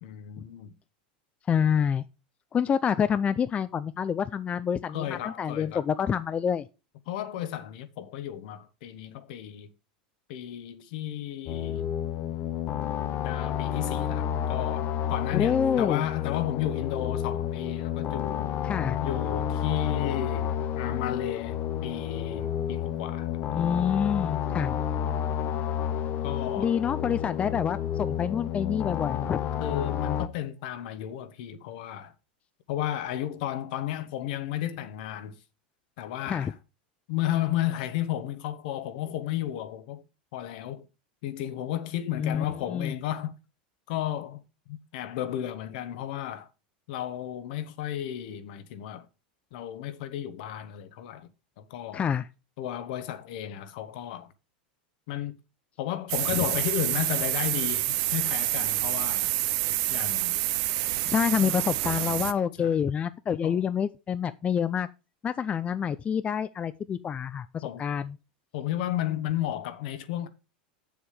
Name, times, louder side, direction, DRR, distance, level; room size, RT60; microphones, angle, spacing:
voice 1, 0.0-0.7 4.9-5.8 7.1-9.7 10.3-11.9 13.2-18.5 19.0-23.3 26.2-26.8 29.6-32.1 32.7-35.4 36.0-36.5 37.1-40.0 40.3-40.8 41.2-43.4 43.9-44.4 44.7-46.5 46.9-49.1 49.5-51.3 51.6-52.1 52.6-54.3 55.1-55.4 55.8-59.3 59.9-60.4 61.4-61.6 62.6-62.8 63.4-63.6 67.6-67.8 68.5-70.3, left 12 dB, 65° left, 1.1 m, -33 dB
voice 2, 1.5-2.0 2.5-6.7 15.3-16.0 18.6-19.0 23.5-24.7 26.6-29.4 36.3-36.5 42.1-42.9 51.9-52.3 56.3-56.4 61.1-64.9 65.2-68.2, left 7 dB, 25° left, 0.5 m, -27 dB
sound 1, 11.5-30.3, left 9 dB, 45° left, 0.9 m, -30 dB
sound 2, 56.1-62.3, right 16 dB, 60° right, 0.8 m, -28 dB
7.5 x 7.1 x 4.9 m
hypercardioid pair, 105°, 5 cm